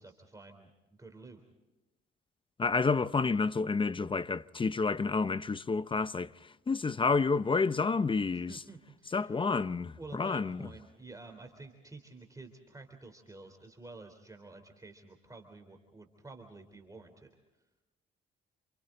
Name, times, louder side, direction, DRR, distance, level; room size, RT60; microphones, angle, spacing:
voice 1, 0.0-1.4 8.3-9.4 10.0-17.3, right 3 dB, 15° right, 3.5 m, -50 dB
voice 2, 2.6-8.6 9.1-10.6, left 4 dB, 25° left, 0.6 m, -29 dB
29.0 x 29.0 x 3.9 m
cardioid pair, 90°, 20 cm